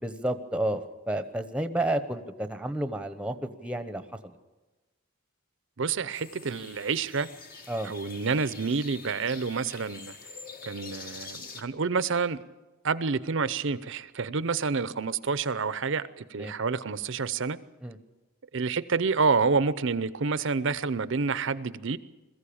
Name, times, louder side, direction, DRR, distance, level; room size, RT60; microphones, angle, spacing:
voice 1, 0.0-4.4 7.7-7.9 16.3-16.5 17.8-18.0, right 1 dB, 5° right, 9 dB, 1.0 m, -31 dB
voice 2, 5.8-7.3 7.8-10.2 10.6-12.4 12.8-17.6 18.5-22.0, right 4 dB, 60° right, 16 dB, 0.7 m, -28 dB
sound 1, 6.1-11.6, left 4 dB, 45° left, 1.7 m, -45 dB
21.5 x 14.5 x 8.7 m, 1.2 s
head